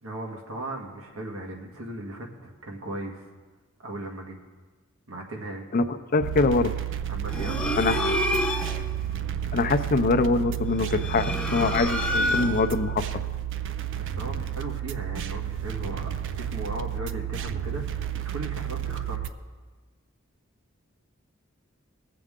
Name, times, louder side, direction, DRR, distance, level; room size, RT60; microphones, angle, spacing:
voice 1, 0.0-3.3 3.8-4.4 5.1-5.7 7.1-8.5 13.9-19.3, right 1 dB, 85° right, 0 dB, 1.7 m, -37 dB
voice 2, 6.1-6.7 7.8-8.0 9.5-13.0, left 3 dB, 45° left, 8 dB, 0.5 m, -23 dB
sound 1, 6.2-19.3, right 10 dB, 60° right, 0.5 m, -31 dB
sound 2, 7.3-8.9 10.7-12.8, left 1 dB, 5° left, 0.9 m, -28 dB
20.0 x 7.6 x 3.7 m, 1.3 s
head